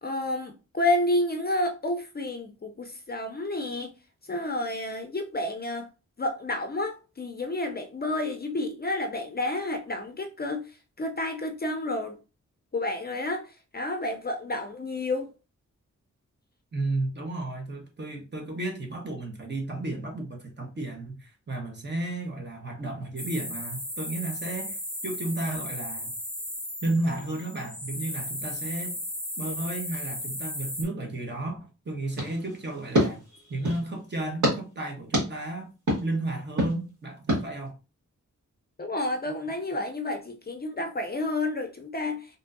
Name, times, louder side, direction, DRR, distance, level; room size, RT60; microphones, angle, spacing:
voice 1, 0.0-4.0 4.3-5.9 6.2-10.7 11.0-12.2 12.7-15.3 38.8-42.3, left 2 dB, 35° left, 0.5 m, -30 dB
voice 2, 16.7-26.1 26.8-29.0 29.4-33.2 33.5-35.7 36.0-37.8, right 2 dB, 35° right, 1.0 m, -33 dB
sound 1, 23.2-30.8, left 1 dB, ahead, 0.9 m, -36 dB
sound 2, 32.1-33.9 34.4-34.6 35.1-35.3 35.9-36.0 36.6-36.7 37.3-37.4, equal, 75° right, 1.6 m, -26 dB
3.5 x 2.6 x 2.6 m
wide cardioid pair, 90°, 29 cm